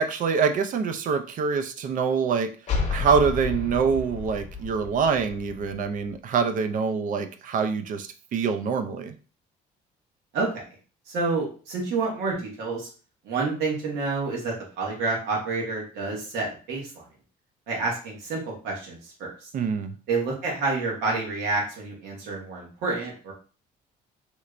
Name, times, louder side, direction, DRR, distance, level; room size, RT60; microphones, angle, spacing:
voice 1, 0.0-2.5 2.9-9.2 19.5-19.9, right 6 dB, 55° right, 8 dB, 0.4 m, -25 dB
sound 1, 2.7-6.2, left 4 dB, 40° left, 0.9 m, -32 dB
voice 2, 11.1-12.9 13.2-17.0 17.7-19.5 20.1-23.3, right 3 dB, 85° right, -2 dB, 1.4 m, -29 dB
3.2 x 3.1 x 2.4 m, 0.39 s
cardioid pair, 110°, 17 cm